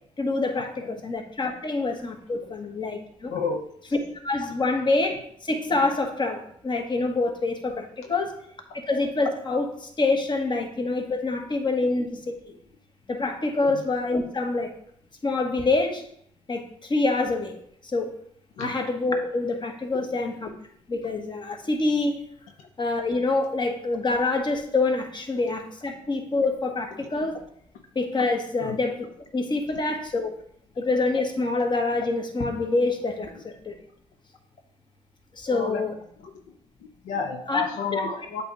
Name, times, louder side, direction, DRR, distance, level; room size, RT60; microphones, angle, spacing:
voice 1, 0.2-3.3 4.2-8.4 8.9-12.2 12.5-12.6 13.1-14.7 15.2-16.0 16.5-17.6 17.8-18.1 18.6-20.5 20.9-22.2 22.8-27.4 27.9-29.1 29.3-30.3 30.8-33.7 35.3-35.9 37.5-37.6 37.9-38.0, left 3 dB, 35° left, 4 dB, 1.2 m, -26 dB
voice 2, 3.3-3.6 8.0-8.1 13.6-13.8 18.6-18.7 19.9-20.0 26.9-27.3 28.6-28.8 29.7-29.8 35.5-35.8 36.2-36.3 36.8-38.4, left 5 dB, 80° left, 4 dB, 0.6 m, -31 dB
7.8 x 2.8 x 4.6 m, 0.67 s
supercardioid pair, 60°, 13 cm